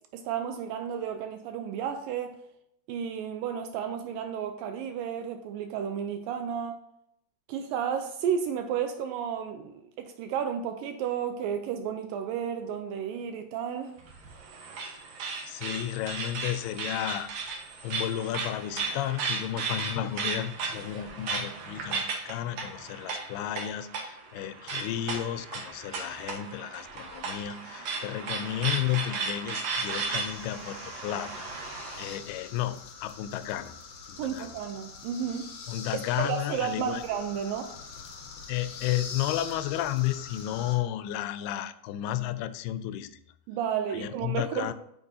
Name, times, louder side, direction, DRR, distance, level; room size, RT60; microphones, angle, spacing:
voice 1, 0.1-2.4 2.9-6.8 7.5-13.9 34.2-35.5 35.9-37.7 43.5-44.7, right 8 dB, 80° right, 2.1 m, -32 dB
sound 1, 14.0-32.2, right 4 dB, 60° right, 1.7 m, -35 dB
voice 2, 15.5-17.5 17.8-31.5 32.0-33.7 34.1-34.5 35.7-37.0 38.5-43.2 43.9-44.7, left 12 dB, 90° left, 2.5 m, -33 dB
sound 2, 29.7-40.8, left 5 dB, 60° left, 1.8 m, -44 dB
8.7 x 6.6 x 2.7 m
omnidirectional pair, 4.4 m